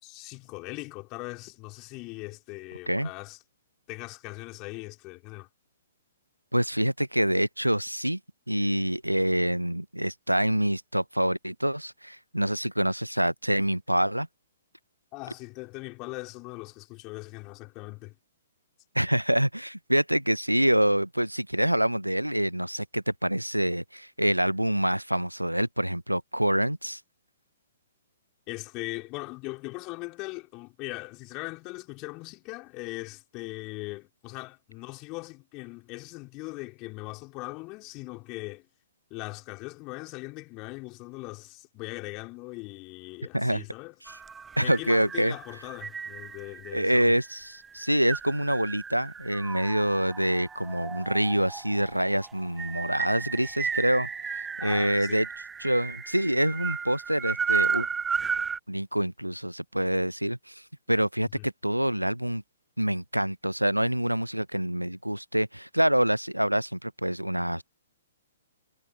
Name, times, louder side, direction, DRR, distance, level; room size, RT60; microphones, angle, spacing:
voice 1, 0.0-3.4 3.9-5.5 15.1-18.2 28.5-38.7 39.1-43.9 44.6-47.2 54.6-55.2 61.2-61.5, left 25 dB, 30° left, 4.3 m, -40 dB
voice 2, 6.5-8.2 8.5-14.3 18.9-27.0 43.3-43.6 44.6-45.3 46.7-55.3 55.6-57.9 58.7-60.6 60.9-62.4 62.8-67.6, equal, 90° right, 0.8 m, -26 dB
sound 1, 44.1-58.6, right 6 dB, 10° right, 0.5 m, -34 dB
figure-of-eight pair, 120°, 0 cm